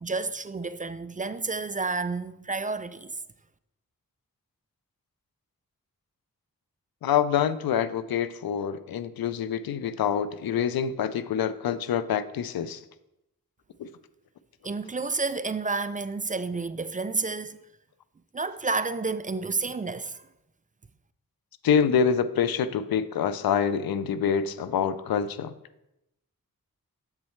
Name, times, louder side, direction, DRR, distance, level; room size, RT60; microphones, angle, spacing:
voice 1, 0.0-3.1 14.6-17.6 18.3-20.2, right 4 dB, 25° right, 0.4 m, -30 dB
voice 2, 7.0-12.8 13.8-13.9 21.6-25.5, left 7 dB, 90° left, 0.5 m, -26 dB
7.3 x 7.3 x 3.1 m
cardioid pair, 55°, 35 cm